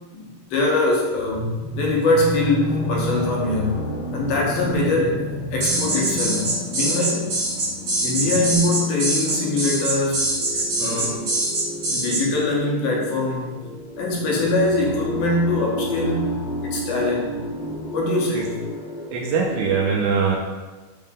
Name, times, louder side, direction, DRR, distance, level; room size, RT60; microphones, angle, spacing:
voice 1, 0.1-3.8 4.1-5.2 5.5-7.3 8.0-10.4 10.8-11.4 11.9-13.6 14.0-17.4 17.9-18.6, left 2 dB, 85° left, -2 dB, 2.2 m, -23 dB
sound 1, 1.1-19.8, equal, 60° left, 1.5 m, -31 dB
sound 2, 5.6-12.2, right 2 dB, 55° right, 1.6 m, -23 dB
voice 2, 19.1-20.4, right 5 dB, 80° right, -1 dB, 1.8 m, -22 dB
5.5 x 2.4 x 3.5 m, 1.2 s
omnidirectional pair, 3.7 m